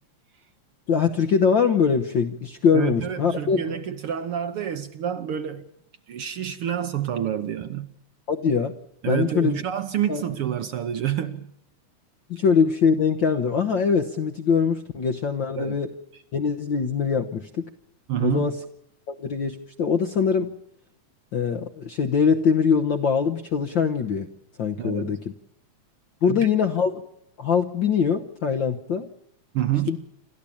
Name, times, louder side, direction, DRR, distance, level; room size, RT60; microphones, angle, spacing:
voice 1, 0.9-3.8 8.3-8.7 9.1-9.6 10.1-10.2 12.3-15.9 16.3-17.6 18.2-18.5 19.1-20.5 21.3-24.3 24.6-25.2 26.2-27.0 27.4-29.1 29.9-30.0, left 6 dB, 60° left, 1.3 m, -22 dB
voice 2, 2.7-5.7 6.1-7.9 9.0-11.5 15.6-15.8 18.1-18.5 24.8-25.2 26.2-26.5 29.5-30.0, right 10 dB, 60° right, 1.6 m, -28 dB
27.5 x 13.5 x 8.6 m
omnidirectional pair, 3.3 m